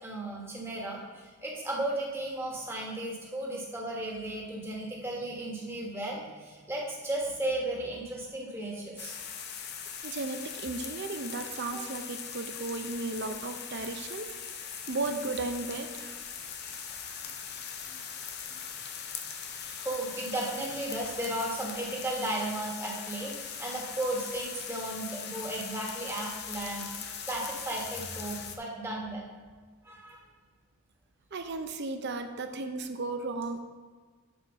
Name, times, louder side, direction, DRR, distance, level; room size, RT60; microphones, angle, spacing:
voice 1, 0.0-9.1 11.7-11.8 17.2-17.3 17.8-18.0 19.6-26.9 27.2-29.2 29.8-30.2, right 1 dB, 10° right, -3 dB, 1.4 m, -35 dB
sound 1, 9.0-28.6, left 7 dB, 50° left, 0.6 m, -40 dB
voice 2, 10.0-14.3 14.5-16.2 31.3-33.6, right 3 dB, 50° right, 6 dB, 0.6 m, -35 dB
8.0 x 4.4 x 5.3 m, 1.4 s
head